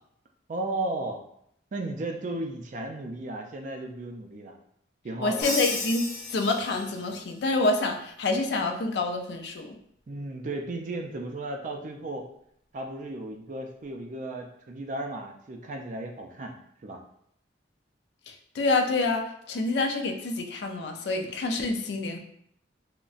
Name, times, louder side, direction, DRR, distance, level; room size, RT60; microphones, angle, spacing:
voice 1, 0.5-1.2 1.7-4.6 5.0-5.5 10.1-12.2 12.7-16.6 16.8-17.0, right 2 dB, 45° right, 3 dB, 0.4 m, -35 dB
voice 2, 5.2-9.8 18.3-22.2, left 3 dB, 65° left, 4 dB, 0.4 m, -27 dB
Crash cymbal, 5.4-7.1, left 2 dB, 40° left, 0.8 m, -33 dB
3.8 x 2.1 x 2.4 m, 0.70 s
head